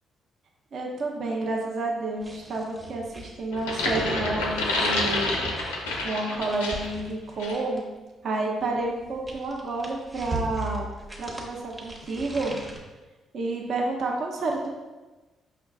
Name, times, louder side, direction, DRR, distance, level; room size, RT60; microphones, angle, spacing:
voice 1, 0.7-5.3 6.0-7.8 8.2-10.9 11.2-12.5 13.3-14.7, right 2 dB, 60° right, -1 dB, 0.6 m, -30 dB
sound 1, 2.2-8.0 8.8-12.8, right 1 dB, 25° right, 0.8 m, -40 dB
sound 2, 3.5-7.0 7.4-7.6, left 2 dB, 80° left, 0.4 m, -28 dB
5.5 x 2.2 x 2.3 m, 1.2 s
hypercardioid pair, 45°, 0 cm